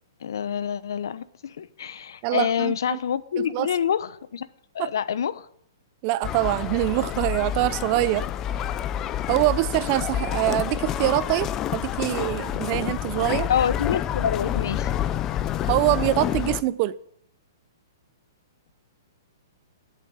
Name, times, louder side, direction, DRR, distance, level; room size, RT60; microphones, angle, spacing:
voice 1, 0.2-4.5 4.7-5.5 13.5-14.9, left 8 dB, 70° left, 0.9 m, -27 dB
voice 2, 2.2-3.0 3.4-3.7 4.8-4.9 6.0-8.3 9.3-13.5 15.7-16.9, right 17 dB, 30° right, 0.5 m, -24 dB
sound 1, 6.2-16.6, left 10 dB, 20° left, 0.5 m, -28 dB
11.5 x 7.5 x 9.4 m
hypercardioid pair, 160°, 2 cm